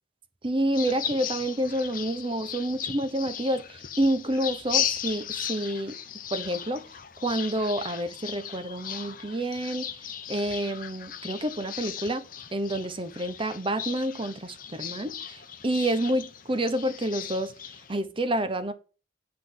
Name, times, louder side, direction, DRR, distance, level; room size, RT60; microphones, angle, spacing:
voice 1, 0.4-6.0 6.3-6.8 7.2-9.9 10.3-12.3 12.5-17.5 17.9-18.7, right 1 dB, 30° right, 0.9 m, -28 dB
sound 1, 0.7-18.0, left 9 dB, 50° left, 0.9 m, -36 dB
10.0 x 4.0 x 7.4 m
head